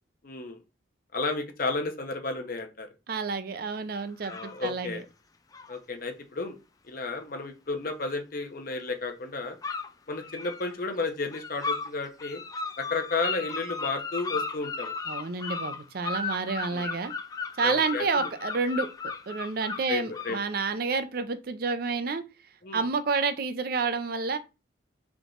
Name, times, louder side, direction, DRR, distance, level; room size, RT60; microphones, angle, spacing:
voice 1, 0.2-0.6 1.1-2.9 4.3-5.0 5.7-6.6 6.9-9.6 10.1-12.4 12.8-14.9 16.7-16.9 17.6-18.3 19.9-20.4 22.6-22.8, left 3 dB, 45° left, 0.7 m, -32 dB
voice 2, 3.1-5.0 15.1-17.1 17.6-22.2 22.7-24.4, right 4 dB, 50° right, 0.4 m, -29 dB
sound 1, 4.2-4.6 5.5-5.8 8.7-8.9 9.6-10.7 11.3-11.9 12.2-20.7, left 4 dB, 20° left, 0.3 m, -35 dB
3.5 x 2.9 x 3.8 m
head